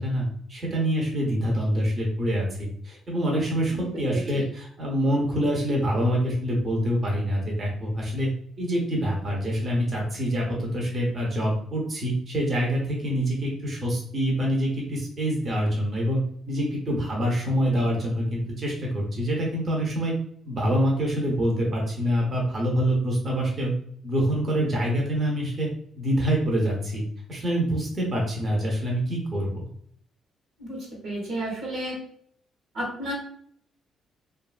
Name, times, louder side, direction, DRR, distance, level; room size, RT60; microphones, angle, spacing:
voice 1, 0.0-8.3 8.6-16.2 16.5-20.1 20.5-23.7 24.0-25.7 26.0-27.0 27.3-29.7, equal, 40° right, -2 dB, 0.8 m, -26 dB
voice 2, 4.1-4.4 30.6-30.8 31.0-32.0 32.7-33.1, right 1 dB, 80° right, -3 dB, 1.2 m, -32 dB
2.6 x 2.4 x 2.4 m, 0.63 s
cardioid pair, 80°, 0 cm